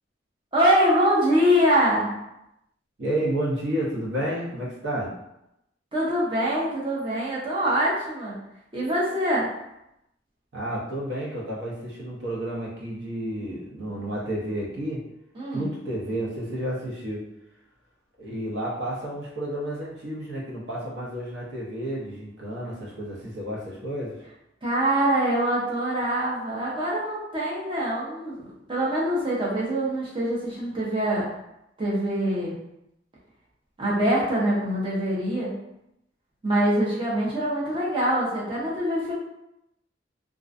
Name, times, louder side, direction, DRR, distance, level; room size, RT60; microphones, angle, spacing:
voice 1, 0.5-2.1 5.9-8.3 8.7-9.5 15.4-15.7 24.6-28.3 28.7-31.3 31.8-32.6 33.8-35.5 36.4-39.1, equal, 25° right, -6 dB, 0.7 m, -24 dB
voice 2, 3.0-5.1 10.5-15.0 15.5-17.2 18.2-24.2, right 1 dB, 60° right, -5 dB, 0.8 m, -31 dB
2.4 x 2.2 x 2.4 m, 0.84 s
head